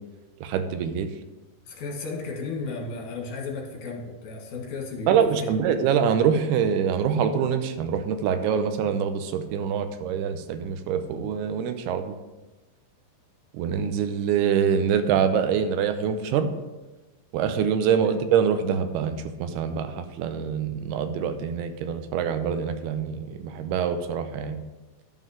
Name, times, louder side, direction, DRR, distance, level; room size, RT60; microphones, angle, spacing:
voice 1, 0.4-1.1 5.1-12.2 13.5-16.5 17.3-24.6, right 7 dB, 90° right, 9 dB, 2.7 m, -25 dB
voice 2, 1.6-5.6 18.0-18.2, left 3 dB, 55° left, 0 dB, 2.8 m, -34 dB
11.0 x 5.7 x 4.9 m, 1.1 s
omnidirectional pair, 4.4 m